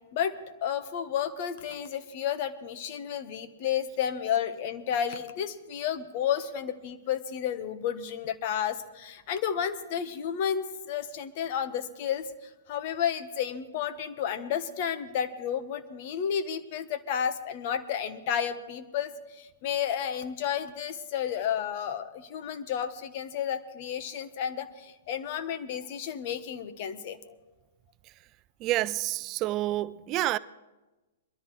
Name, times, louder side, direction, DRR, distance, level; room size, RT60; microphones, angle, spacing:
voice 1, 0.6-27.2, left 8 dB, 50° left, 1.1 m, -32 dB
voice 2, 28.6-30.4, right 15 dB, 35° right, 0.3 m, -28 dB
22.0 x 13.0 x 3.3 m
hypercardioid pair, 130°, 0 cm